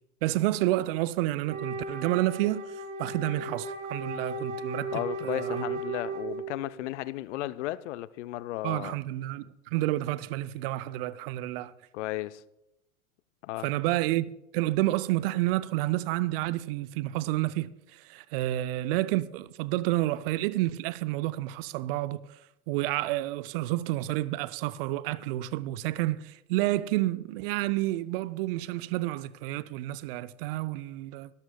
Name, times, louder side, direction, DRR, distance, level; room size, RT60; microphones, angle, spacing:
voice 1, 0.2-2.7 3.0-5.6 8.6-11.7 13.6-14.3 14.5-22.2 22.7-31.3, right 16 dB, 45° right, 0.5 m, -29 dB
Wind instrument woodwind instrument, 1.4-6.6, right 2 dB, 65° right, 3.7 m, -36 dB
voice 2, 4.9-9.0 11.9-12.4 13.4-13.7, left 15 dB, 55° left, 0.6 m, -34 dB
23.5 x 13.0 x 2.2 m
hypercardioid pair, 95°, 43 cm